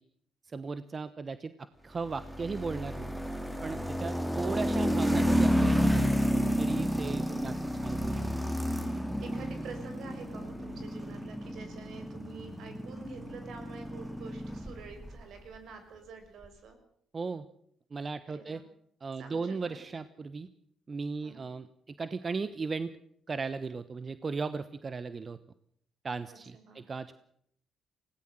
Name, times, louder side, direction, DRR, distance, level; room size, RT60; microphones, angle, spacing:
voice 1, 0.4-3.1 3.6-6.2 6.6-7.5 7.8-8.2 17.1-17.5 17.9-18.6 19.0-20.5 20.9-21.7 22.0-22.9 23.3-25.4 26.0-27.1, right 4 dB, 40° right, 13 dB, 1.0 m, -36 dB
sound 1, 2.0-15.2, equal, 5° right, 2.7 m, -31 dB
voice 2, 7.3-7.7 9.0-16.8 18.3-18.6 19.2-19.9 21.2-21.4 26.3-26.9, right 4 dB, 70° right, 7 dB, 5.6 m, -48 dB
20.0 x 17.5 x 7.7 m, 0.67 s
supercardioid pair, 70°, 0 cm